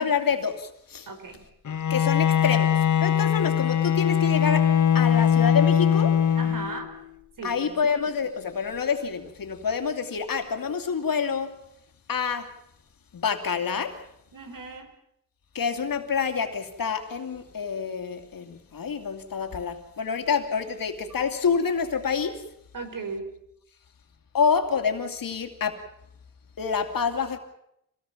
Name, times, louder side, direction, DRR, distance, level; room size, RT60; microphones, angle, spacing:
voice 1, 0.0-1.1 1.9-6.2 7.4-11.6 12.1-12.5 13.1-14.0 15.5-22.4 24.3-25.8 26.6-27.4, left 6 dB, 75° left, 7 dB, 2.7 m, -27 dB
voice 2, 1.1-1.4 6.4-6.9 7.4-7.8 14.3-14.9 22.7-23.2, right 3 dB, 65° right, 7 dB, 4.2 m, -36 dB
Bowed string instrument, 1.7-7.0, left 9 dB, 55° left, 1.2 m, -21 dB
25.5 x 18.0 x 7.3 m, 0.75 s
wide cardioid pair, 130°, 35 cm